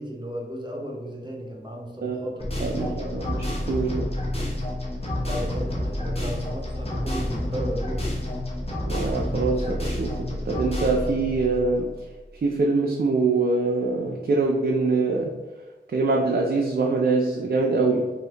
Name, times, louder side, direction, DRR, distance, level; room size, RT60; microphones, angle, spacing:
voice 1, 0.0-3.2 5.2-8.1, equal, 25° right, -1 dB, 0.7 m, -35 dB
sound 1, 2.4-12.3, left 1 dB, 30° left, 0.8 m, -29 dB
voice 2, 2.6-4.1 8.9-11.9 12.4-15.3 15.9-18.1, right 3 dB, 55° right, -1 dB, 0.4 m, -24 dB
2.7 x 2.5 x 3.3 m, 1.2 s
wide cardioid pair, 45°, 19 cm